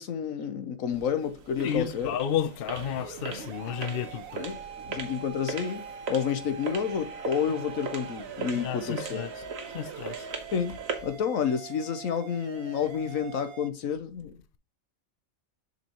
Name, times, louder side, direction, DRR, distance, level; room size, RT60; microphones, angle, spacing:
voice 1, 0.0-2.2 4.4-4.6 4.9-9.3 10.5-10.8 11.0-14.3, left 7 dB, 80° left, 1.3 m, -30 dB
sound 1, 0.9-11.2, right 5 dB, 75° right, 1.5 m, -40 dB
voice 2, 1.6-4.5 8.5-9.3 9.7-10.3, left 9 dB, 55° left, 0.7 m, -32 dB
sound 2, 2.7-13.7, right 7 dB, 55° right, 0.7 m, -44 dB
7.3 x 5.9 x 3.0 m
omnidirectional pair, 1.4 m